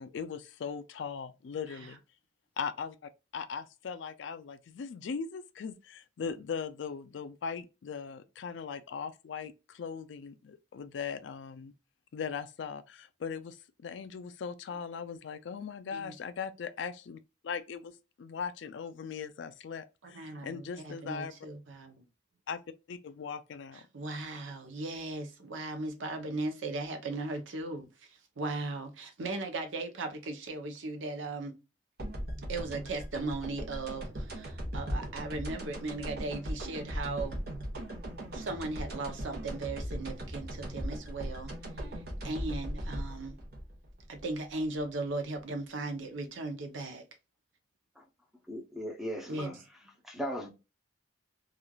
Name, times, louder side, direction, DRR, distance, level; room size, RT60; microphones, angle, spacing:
voice 1, 0.0-2.0 2.6-11.7 12.1-17.9 18.2-21.3 22.5-22.6 22.9-23.8, left 6 dB, 65° left, 0.3 m, -39 dB
voice 2, 20.1-22.1 23.7-31.6 32.5-37.4 38.3-43.4 44.1-47.0 49.3-49.6, right 2 dB, 75° right, 0.7 m, -37 dB
sound 1, 32.0-44.8, equal, 50° right, 1.0 m, -38 dB
voice 3, 48.5-49.6 50.0-50.5, equal, ahead, 0.6 m, -37 dB
3.0 x 2.4 x 2.2 m
head